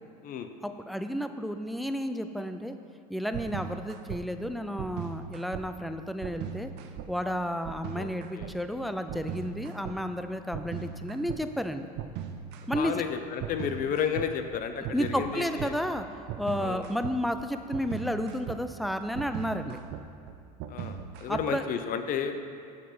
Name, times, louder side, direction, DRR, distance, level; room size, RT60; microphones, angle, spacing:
voice 1, 0.6-2.8 3.1-6.7 7.1-11.9 12.7-13.0 14.9-16.1 16.4-19.8 21.3-21.6, equal, ahead, 8 dB, 0.5 m, -32 dB
sound 1, 3.3-4.2 4.8-5.7 6.2-7.1 7.6-8.5 9.1-10.0 10.5-11.4 12.0-12.8 13.4-21.7, right 9 dB, 55° right, 0.7 m, -39 dB
voice 2, 12.8-15.7 16.6-16.9 20.7-22.4, left 7 dB, 45° left, 8 dB, 0.7 m, -32 dB
8.0 x 6.5 x 5.1 m, 2.3 s
hypercardioid pair, 85°, 20 cm